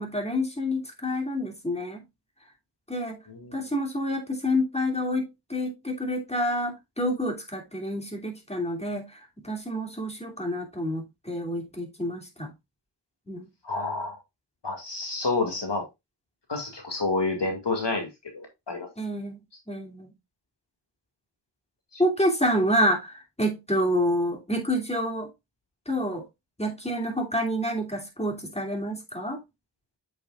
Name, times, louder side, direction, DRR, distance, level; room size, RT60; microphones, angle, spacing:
voice 1, 0.0-2.0 2.9-3.2 3.5-12.5 13.3-13.5 19.0-19.4 19.7-20.1 22.0-25.3 25.9-26.2 26.6-29.4, equal, 15° left, 2.7 m, -28 dB
voice 2, 13.6-14.2 14.6-15.8 16.5-18.1 18.3-18.9 21.9-22.0, left 3 dB, 70° left, 2.2 m, -29 dB
7.9 x 6.5 x 2.4 m
wide cardioid pair, 40°, 43 cm